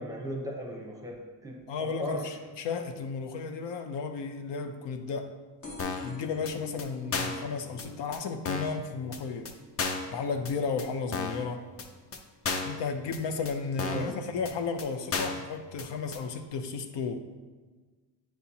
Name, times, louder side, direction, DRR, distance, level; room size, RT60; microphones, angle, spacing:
voice 1, 0.0-2.2 13.9-14.1, equal, 10° right, -1 dB, 0.8 m, -37 dB
voice 2, 1.7-5.3 6.0-9.5 10.1-11.7 12.6-17.2, left 5 dB, 75° left, 7 dB, 0.6 m, -33 dB
sound 1, 5.6-12.9 13.3-13.8 14.7-14.8 15.0-15.1 15.3-15.4, left 3 dB, 50° left, 1.3 m, -49 dB
sound 2, 5.8-6.1 6.4-6.5 6.8-6.9 7.1-7.4 7.8-7.9 8.1-8.2 8.4-8.8 9.1-9.2 9.4-9.5 9.8-10.1 10.4-10.5 10.8-10.9 11.1-11.4 11.8-11.9 12.1-12.2 12.4-12.8 13.1-13.2 13.4-13.5 13.8-14.1 14.4-14.5 14.8-14.9 15.1-15.4 15.8-15.9 16.1-16.2, left 4 dB, 35° left, 0.5 m, -33 dB
9.1 x 4.3 x 2.8 m, 1.4 s
cardioid pair, 150°, 43 cm